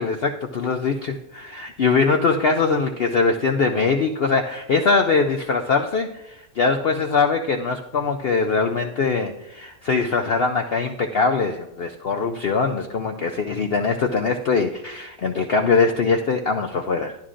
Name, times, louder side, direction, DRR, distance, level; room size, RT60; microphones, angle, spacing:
voice 1, 0.0-17.2, left 4 dB, 75° left, 4 dB, 0.5 m, -22 dB
12.5 x 12.0 x 2.5 m, 0.87 s
omnidirectional pair, 1.7 m